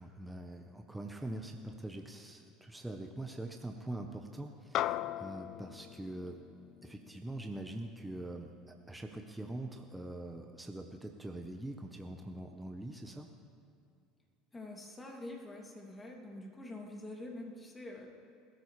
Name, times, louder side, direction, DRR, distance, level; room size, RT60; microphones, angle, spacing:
voice 1, 0.0-6.4 6.8-13.3, right 1 dB, 10° right, 3 dB, 1.1 m, -43 dB
sound 1, 4.7-9.4, left 13 dB, 55° left, 0.3 m, -40 dB
voice 2, 14.5-18.1, left 1 dB, 20° left, 0 dB, 2.8 m, -46 dB
21.0 x 13.0 x 3.4 m, 2.6 s
hypercardioid pair, 75°, 0 cm